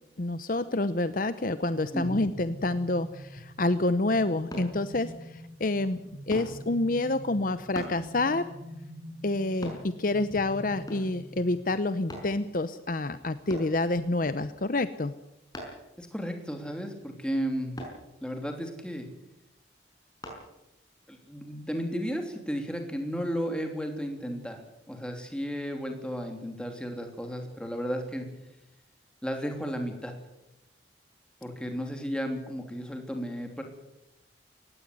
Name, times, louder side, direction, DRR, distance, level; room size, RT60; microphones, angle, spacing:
voice 1, 0.2-5.1 5.6-6.0 6.3-8.5 9.2-15.1, left 2 dB, 45° left, 13 dB, 0.8 m, -28 dB
sound 1, 1.7-12.1, equal, 75° right, 3.8 m, -46 dB
sound 2, 4.5-4.7 6.3-6.5 7.7-8.0 9.6-9.8 10.9-11.2 12.1-12.3 13.5-13.7 15.5-15.9 17.8-18.0 20.2-20.4 21.0-21.1, equal, 20° left, 5.9 m, -39 dB
voice 2, 16.0-17.8 18.2-19.1 21.1-24.6 24.9-28.3 29.2-30.1 31.4-33.6, equal, 5° left, 4 dB, 3.0 m, -33 dB
19.0 x 16.0 x 9.5 m, 0.91 s
head